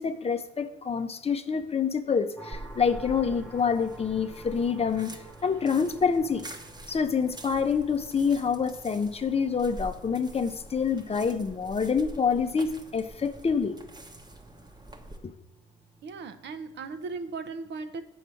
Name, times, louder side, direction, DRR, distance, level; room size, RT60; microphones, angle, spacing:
voice 1, 0.0-5.1 5.4-6.4 6.9-13.7, left 6 dB, 30° left, 0.6 m, -27 dB
sound 1, 2.4-17.2, right 2 dB, 5° left, 1.1 m, -52 dB
sound 2, 2.5-15.2, right 1 dB, 20° right, 1.0 m, -46 dB
voice 2, 16.0-18.0, right 4 dB, 60° right, 0.8 m, -37 dB
7.3 x 4.5 x 6.9 m
cardioid pair, 90°, 20 cm